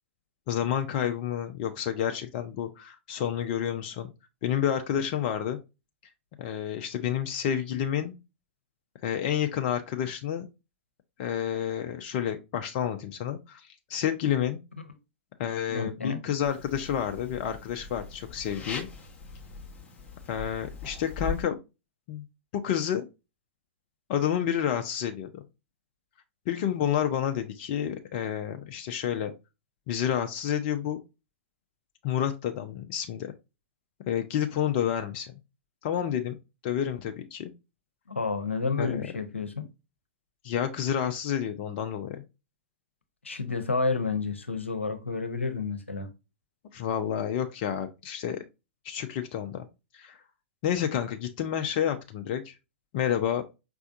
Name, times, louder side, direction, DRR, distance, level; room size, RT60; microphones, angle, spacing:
voice 1, 0.5-4.1 4.4-5.6 6.4-8.2 9.0-10.5 11.2-14.6 15.4-18.9 20.3-21.6 22.1-22.2 22.5-23.1 24.1-25.3 26.5-29.3 29.9-31.0 32.0-33.3 34.1-35.3 35.8-36.4 36.6-37.5 38.8-39.1 40.4-42.2 46.7-48.4 48.8-49.7 49.9-50.2 50.6-52.6 52.9-53.4, left 9 dB, 40° left, 0.5 m, -29 dB
voice 2, 15.7-16.2 38.1-39.7 43.2-46.1, left 4 dB, 80° left, 0.9 m, -30 dB
sound 1, 16.4-21.4, left 4 dB, 15° left, 1.1 m, -40 dB
5.2 x 3.4 x 2.6 m
figure-of-eight pair, 105°, 7 cm